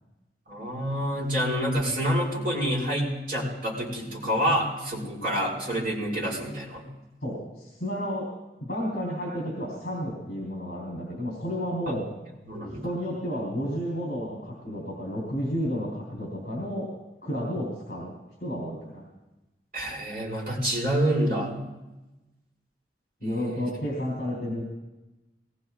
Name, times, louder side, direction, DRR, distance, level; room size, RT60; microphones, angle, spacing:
voice 1, 0.5-6.9 12.5-12.9 19.7-21.5 23.2-23.7, equal, 50° right, -5 dB, 5.3 m, -28 dB
voice 2, 7.2-8.3 8.6-12.1 12.8-16.9 17.2-18.1 18.4-19.1 23.2-24.6, equal, 55° left, -3 dB, 3.7 m, -31 dB
22.5 x 20.0 x 2.4 m, 1.0 s
head